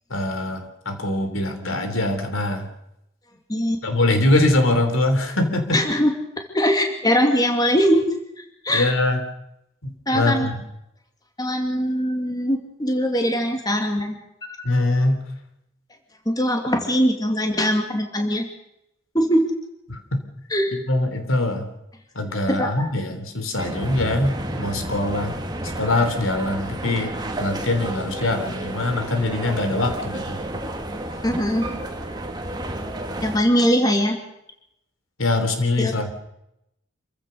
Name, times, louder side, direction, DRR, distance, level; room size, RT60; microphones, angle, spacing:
voice 1, 0.1-2.7 3.8-5.8 8.7-9.2 9.8-10.5 14.6-15.2 19.9-20.2 20.9-21.7 22.1-25.3 25.8-30.4 35.2-36.1, left 2 dB, 85° left, 8 dB, 3.4 m, -23 dB
voice 2, 3.5-3.8 5.7-6.1 6.5-8.0 8.4-8.9 10.1-10.5 11.4-14.2 14.6-14.7 16.3-18.5 19.1-19.5 20.5-20.7 22.5-22.9 31.2-31.7 33.2-34.2 35.8-35.9, equal, 20° left, 4 dB, 2.5 m, -21 dB
sound 1, 23.6-33.4, right 1 dB, 20° right, 2.1 m, -31 dB
27.5 x 15.0 x 6.6 m, 0.81 s
head